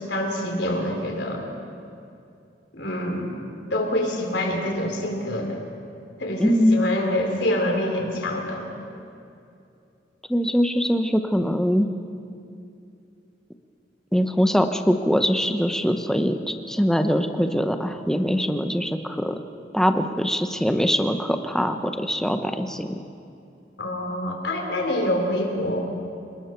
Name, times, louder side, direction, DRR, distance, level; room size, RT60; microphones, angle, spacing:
voice 1, 0.0-1.5 2.7-3.4 3.7-5.6 6.2-8.7 23.8-25.9, left 1 dB, 75° left, 1 dB, 3.7 m, -26 dB
voice 2, 6.4-6.9 10.3-11.9 14.1-19.3 19.7-23.0, equal, 5° left, 6 dB, 0.9 m, -22 dB
29.5 x 19.5 x 4.6 m, 2.6 s
head